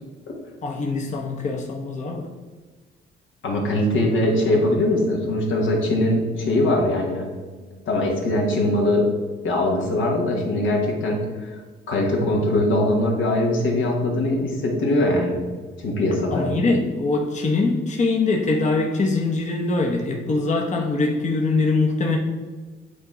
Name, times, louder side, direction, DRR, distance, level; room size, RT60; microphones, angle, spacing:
voice 1, 0.6-2.3 16.3-22.2, left 3 dB, 35° left, 1 dB, 0.8 m, -23 dB
voice 2, 3.4-7.3 7.9-9.1 9.4-11.6 11.9-15.5 15.8-16.6, left 1 dB, 80° left, -1 dB, 1.6 m, -21 dB
8.5 x 2.9 x 4.9 m, 1.4 s
cardioid pair, 90°, 20 cm